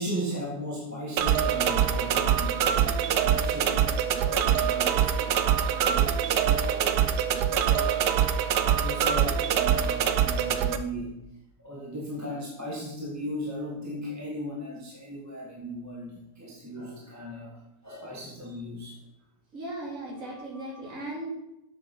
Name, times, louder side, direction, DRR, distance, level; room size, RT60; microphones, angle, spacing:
voice 1, 0.0-11.1 11.6-19.0 20.2-21.1, equal, 10° right, -3 dB, 1.6 m, -37 dB
sound 1, 1.2-10.8, right 9 dB, 85° right, 1.3 m, -24 dB
voice 2, 19.5-21.3, right 1 dB, 55° right, -5 dB, 3.5 m, -37 dB
7.9 x 7.7 x 6.1 m, 0.90 s
omnidirectional pair, 1.7 m